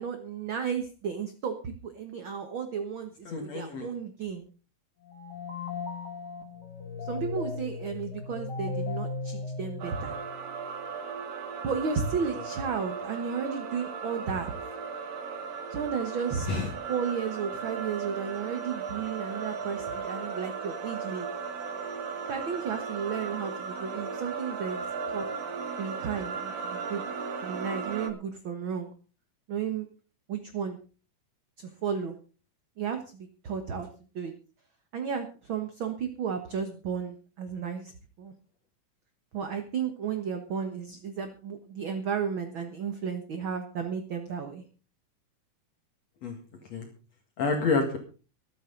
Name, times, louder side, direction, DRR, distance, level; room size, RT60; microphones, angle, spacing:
voice 1, 0.0-4.5 7.0-10.2 11.6-14.5 15.7-16.5 16.9-21.3 22.3-25.3 25.8-27.0 27.4-28.9 29.5-29.9 30.3-30.8 31.6-32.1 32.8-33.9 34.1-34.3 34.9-37.9 38.2-38.3 39.3-44.6, right 6 dB, 50° right, 7 dB, 1.7 m, -33 dB
voice 2, 3.3-3.9 16.5-16.7 46.2-46.4 46.7-46.9 47.4-48.0, left 4 dB, 55° left, 2 dB, 3.0 m, -28 dB
sound 1, 5.0-10.5, left 3 dB, 35° left, 2.7 m, -36 dB
sound 2, 9.8-28.1, right 5 dB, 80° right, 3.3 m, -36 dB
23.5 x 9.3 x 3.9 m, 0.36 s
omnidirectional pair, 3.7 m